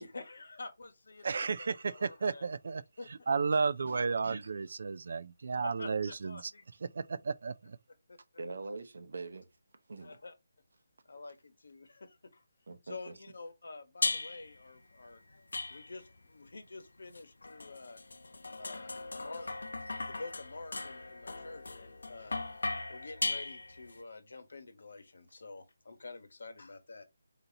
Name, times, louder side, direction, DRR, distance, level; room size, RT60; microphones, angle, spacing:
voice 1, 0.0-1.3 1.6-2.4 3.0-3.1 5.6-6.6 8.1-8.4 10.0-10.3 11.0-12.4 12.8-18.0 18.6-19.5 20.0-22.4 22.9-27.1, left 3 dB, 70° left, 1.1 m, -48 dB
voice 2, 1.2-2.8 3.3-6.5 6.9-7.8, right 5 dB, 50° right, 0.3 m, -33 dB
voice 3, 3.9-4.5 6.0-6.1 8.4-9.5 9.9-10.2 12.7-13.2, right 3 dB, 65° right, 0.8 m, -44 dB
sound 1, 14.0-14.6 15.5-16.2 17.1-24.0, left 3 dB, 90° left, 0.5 m, -38 dB
4.0 x 4.0 x 2.8 m
hypercardioid pair, 175°, 0 cm